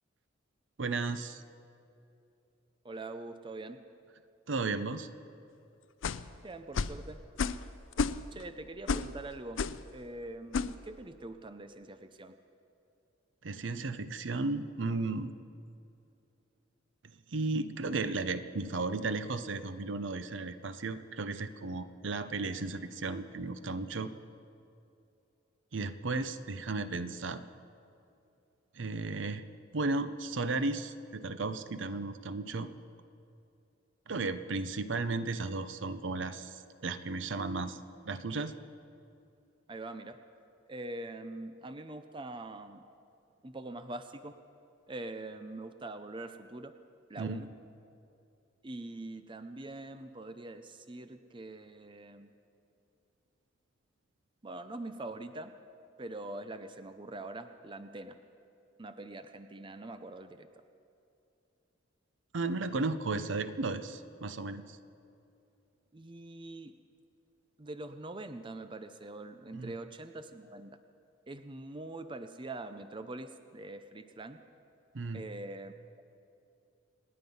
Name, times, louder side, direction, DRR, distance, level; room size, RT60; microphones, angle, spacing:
voice 1, 0.8-1.4 4.5-5.1 13.4-15.3 17.3-24.1 25.7-27.4 28.7-29.4 29.7-32.7 34.1-37.8 38.0-38.5 47.2-47.4 62.3-64.8 69.5-69.7 74.9-75.2, right 3 dB, 75° right, 11 dB, 0.7 m, -34 dB
voice 2, 2.8-3.8 6.4-7.2 8.3-9.6 9.9-12.4 39.7-40.2 40.7-42.8 43.4-44.3 44.9-46.7 47.1-47.5 48.6-52.3 54.4-55.5 56.0-58.1 58.8-60.5 65.9-66.7 67.6-70.8 71.3-74.4 75.1-75.7, right 2 dB, 25° right, 9 dB, 0.6 m, -43 dB
sound 1, 6.0-6.3 6.8-7.0 7.4-7.7 7.9-8.4 8.9-9.1 9.6-9.8 10.5-10.7, left 5 dB, 85° left, 0.5 m, -31 dB
26.5 x 9.8 x 5.5 m, 2.7 s
head